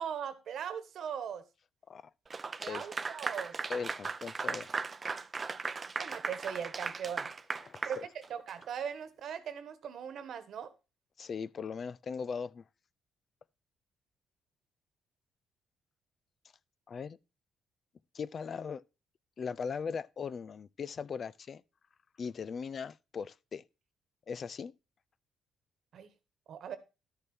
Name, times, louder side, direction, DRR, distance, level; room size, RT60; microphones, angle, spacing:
voice 1, 0.0-1.4 2.6-3.5 6.0-7.3 7.8-8.0 8.3-10.7 25.9-26.1 26.5-26.8, right 8 dB, 65° right, 1.4 m, -39 dB
Clapping / Applause, 2.3-8.7, right 4 dB, 35° right, 0.6 m, -37 dB
voice 2, 3.7-4.7 7.6-8.0 11.2-12.6 16.9-17.2 18.1-18.8 19.4-21.6 22.2-23.6 24.3-24.7, left 6 dB, 50° left, 0.4 m, -39 dB
12.0 x 6.7 x 4.4 m
cardioid pair, 90°, 0 cm